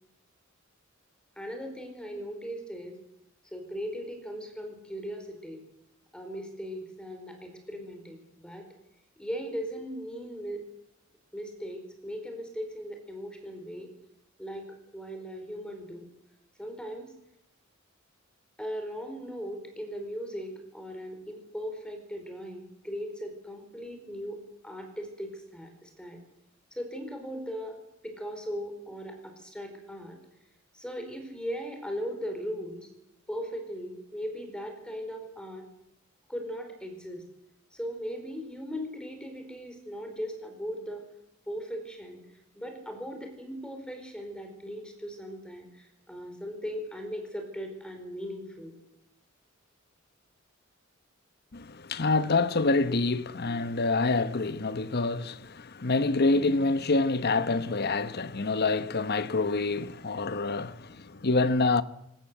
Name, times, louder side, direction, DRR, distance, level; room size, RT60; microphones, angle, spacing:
voice 1, 1.4-3.0 3.5-5.6 6.1-8.7 9.2-10.6 11.3-13.9 14.4-16.1 16.6-17.1 18.6-26.2 26.7-27.8 28.0-30.2 30.7-32.9 33.3-35.6 36.3-37.2 37.7-41.0 41.5-42.2 42.5-48.8, equal, 5° left, 4.3 m, -38 dB
voice 2, 51.5-61.8, left 3 dB, 50° left, 1.0 m, -26 dB
21.5 x 19.0 x 8.0 m
head